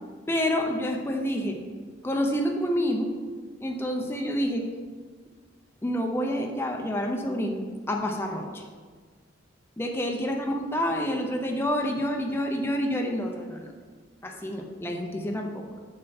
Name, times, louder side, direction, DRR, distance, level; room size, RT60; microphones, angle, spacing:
voice 1, 0.3-1.6 2.0-3.1 3.6-4.7 5.8-8.6 9.8-13.7 14.2-15.6, equal, 15° left, 2 dB, 0.6 m, -28 dB
6.8 x 6.5 x 4.2 m, 1.5 s
head